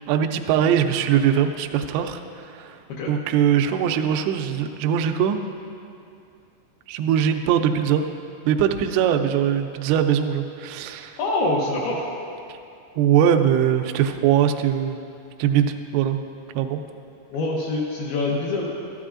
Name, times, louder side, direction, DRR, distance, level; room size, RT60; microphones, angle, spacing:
voice 1, 0.1-2.8 3.1-5.4 6.9-8.1 8.5-11.2 13.0-15.0 15.4-16.2 16.6-16.8, right 9 dB, 85° right, 6 dB, 2.6 m, -21 dB
voice 2, 11.2-12.1 17.3-18.7, left 2 dB, 75° left, -4 dB, 2.4 m, -24 dB
13.0 x 11.5 x 2.5 m, 2.6 s
omnidirectional pair, 5.2 m